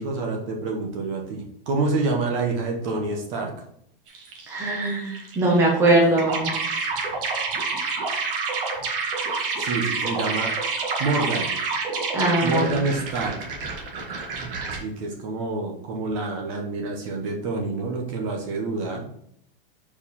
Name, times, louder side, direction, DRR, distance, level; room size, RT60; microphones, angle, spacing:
voice 1, 0.0-3.5 9.6-10.5 11.0-11.5 12.4-13.4 14.4-19.1, right 3 dB, 35° right, 1 dB, 1.0 m, -27 dB
sound 1, 4.1-4.8 5.1-14.8, right 4 dB, 65° right, 1.7 m, -28 dB
voice 2, 4.5-6.5 12.1-12.7, right 2 dB, 10° right, -3 dB, 0.9 m, -21 dB
4.7 x 4.7 x 5.4 m, 0.70 s
supercardioid pair, 175°, 30 cm